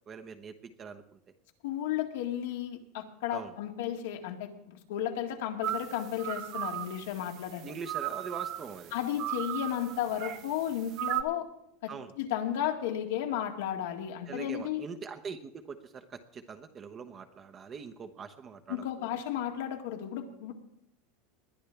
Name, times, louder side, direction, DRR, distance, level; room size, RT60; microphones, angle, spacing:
voice 1, 0.1-1.2 3.3-3.5 7.6-8.9 11.9-12.2 14.3-19.2, right 5 dB, 30° right, 6 dB, 1.1 m, -43 dB
voice 2, 1.6-7.7 8.9-11.5 11.8-11.9 12.2-14.8 18.7-20.5, left 10 dB, 80° left, 4 dB, 2.0 m, -33 dB
sound 1, 5.6-11.2, right 13 dB, 55° right, 1.0 m, -37 dB
20.5 x 10.5 x 3.5 m, 0.78 s
supercardioid pair, 115°, 0 cm